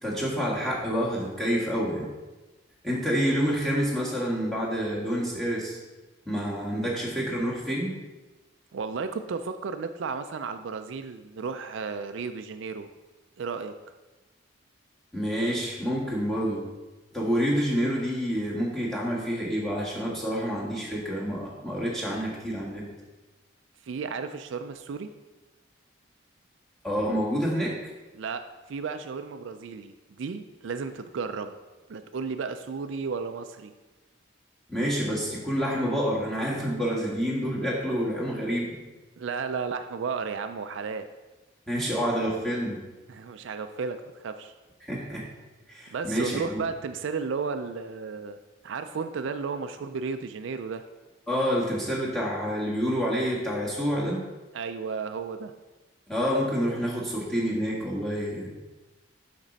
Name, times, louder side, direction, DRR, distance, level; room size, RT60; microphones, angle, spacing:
voice 1, 0.0-2.1 2.8-5.8 6.2-7.9 15.1-16.6 17.1-22.8 26.8-27.7 34.7-38.8 41.7-42.8 44.8-45.3 45.7-46.6 51.3-54.2 56.1-58.5, equal, ahead, -6 dB, 1.6 m, -28 dB
voice 2, 8.7-12.9 13.4-13.7 23.8-25.1 28.1-31.6 31.9-33.7 39.2-41.1 43.1-44.5 45.9-48.4 48.6-50.8 54.5-55.5, right 5 dB, 70° right, 9 dB, 0.4 m, -33 dB
7.4 x 6.0 x 4.0 m, 1.2 s
head